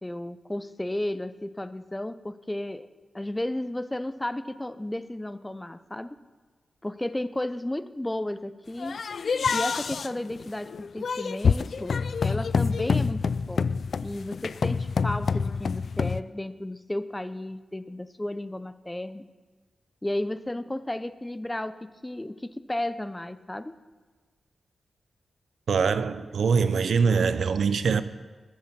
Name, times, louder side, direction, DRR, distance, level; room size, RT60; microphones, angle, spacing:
voice 1, 0.0-2.9 3.1-6.2 6.8-9.0 9.5-13.7 14.0-19.2 20.0-23.8, left 1 dB, 10° left, 0.6 m, -33 dB
sound 1, 8.8-16.2, left 5 dB, 60° left, 0.4 m, -27 dB
voice 2, 25.7-28.0, right 5 dB, 75° right, 0.7 m, -23 dB
21.0 x 7.2 x 7.4 m
wide cardioid pair, 135°, 0 cm